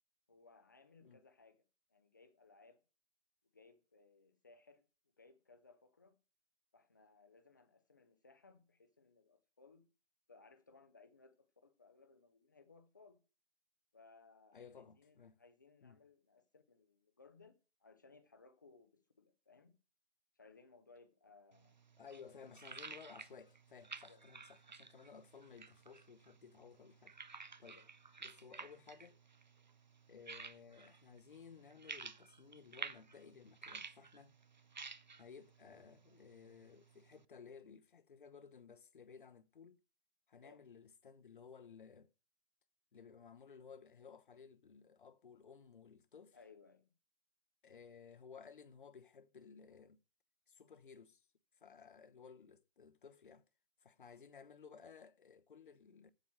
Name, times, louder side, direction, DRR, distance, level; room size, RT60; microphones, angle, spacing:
voice 1, 0.3-1.6 1.9-2.8 3.5-4.8 5.2-6.2 6.7-9.9 10.3-13.2 13.9-17.5 17.8-19.7 20.4-21.8 24.0-24.2 27.8-27.9 40.4-40.6 46.3-46.9, left 4 dB, 15° left, 0.6 m, -64 dB
voice 2, 14.5-15.4 15.8-16.0 22.0-27.1 27.6-27.8 28.2-29.2 30.1-34.4 35.1-39.8 40.3-42.1 42.9-46.4 47.6-50.0 50.5-51.3 51.6-53.4 53.8-56.1, left 6 dB, 45° left, 0.9 m, -57 dB
sound 1, 21.5-37.2, right 4 dB, 40° right, 0.4 m, -53 dB
7.9 x 7.5 x 7.5 m
figure-of-eight pair, 155°, 36 cm